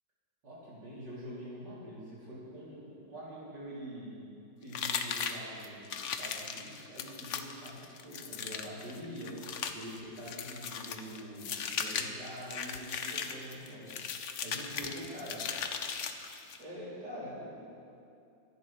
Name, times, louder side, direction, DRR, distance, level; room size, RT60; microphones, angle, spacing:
voice 1, 0.4-4.2 4.6-9.3 9.7-15.5 16.6-17.7, equal, 65° right, -8 dB, 5.3 m, -45 dB
sound 1, 4.7-16.6, left 6 dB, 55° left, 0.9 m, -38 dB
24.0 x 11.0 x 4.6 m, 2.5 s
omnidirectional pair, 2.0 m